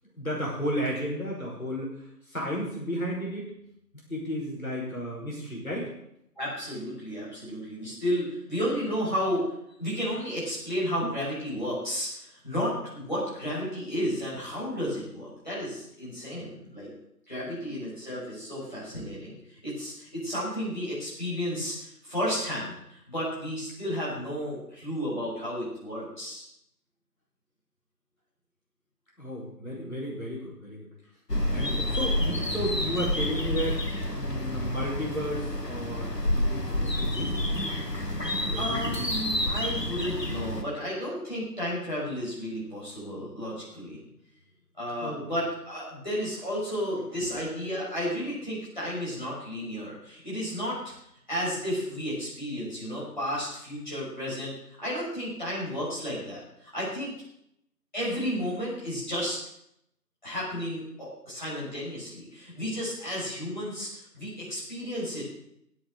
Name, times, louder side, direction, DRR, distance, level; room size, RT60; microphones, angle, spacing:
voice 1, 0.2-3.5 3.9-5.9 11.0-11.1 17.5-17.8 29.2-30.9 31.5-33.8 34.1-37.4 38.2-39.1 45.0-45.3, equal, 55° left, -4 dB, 5.4 m, -33 dB
voice 2, 6.4-9.4 9.8-16.9 17.3-26.5 38.6-44.0 44.7-50.9 51.3-54.5 54.8-57.1 57.9-59.4 60.2-65.3, equal, 30° left, -9 dB, 6.0 m, -32 dB
sound 1, 31.3-40.6, left 1 dB, 75° left, 2.3 m, -29 dB
16.0 x 8.8 x 6.5 m, 0.76 s
figure-of-eight pair, 180°, 49 cm